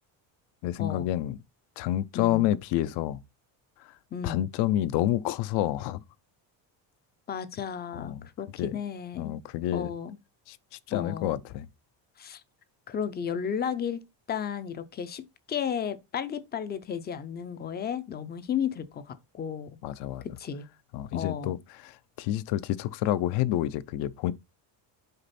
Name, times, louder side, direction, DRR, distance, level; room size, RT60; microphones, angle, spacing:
voice 1, 0.6-1.4 1.8-3.2 4.2-6.0 7.9-8.3 8.6-8.7 9.2-9.9 10.5-10.6 10.9-11.7 19.8-20.2 20.9-21.6 21.8-24.3, left 13 dB, 65° left, 0.6 m, -28 dB
voice 2, 2.1-2.5 4.1-4.4 7.3-9.4 9.7-10.2 10.9-11.4 12.2-12.4 12.9-14.0 14.3-19.8 20.4-20.7 21.1-21.6, left 8 dB, 25° left, 0.4 m, -33 dB
6.6 x 5.0 x 4.1 m
cardioid pair, 175°, 45 cm